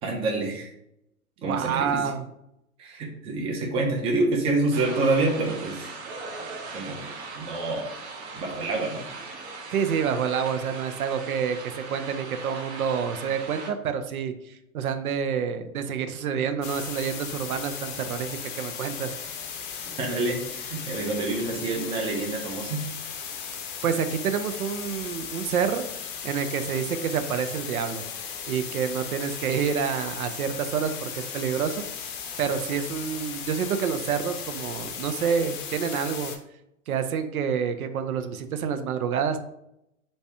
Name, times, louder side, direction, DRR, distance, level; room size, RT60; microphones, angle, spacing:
voice 1, 0.0-0.7 1.4-1.9 2.8-5.9 6.7-7.9 8.4-9.0 20.0-22.8, right 2 dB, 15° right, -1 dB, 0.5 m, -27 dB
voice 2, 1.4-2.2 9.7-19.1 23.8-25.9 26.2-28.1 28.5-31.8 32.4-36.3 36.9-39.4, right 7 dB, 75° right, 9 dB, 0.6 m, -28 dB
sound 1, 4.7-13.7, right 3 dB, 50° right, 0.8 m, -39 dB
sound 2, 16.6-36.4, left 7 dB, 35° left, 0.6 m, -36 dB
3.1 x 2.7 x 3.3 m, 0.80 s
hypercardioid pair, 120°, 43 cm